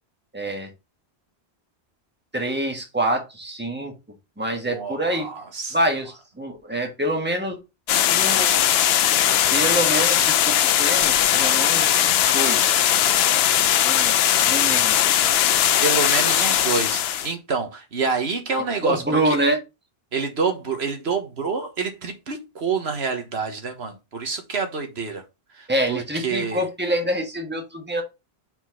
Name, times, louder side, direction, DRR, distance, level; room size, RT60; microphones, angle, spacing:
voice 1, 0.3-0.7 2.3-3.9 4.4-5.3 5.7-7.6 8.1-8.9 9.5-12.9 13.8-14.2 14.4-15.0 18.8-19.6 25.7-28.0, right 1 dB, 10° right, 1.5 m, -26 dB
voice 2, 4.6-5.8 15.8-19.4 20.1-25.2 25.6-26.6, right 4 dB, 80° right, 1.6 m, -27 dB
sound 1, 7.9-17.3, left 10 dB, 75° left, 0.8 m, -19 dB
4.5 x 4.4 x 5.8 m
omnidirectional pair, 1.1 m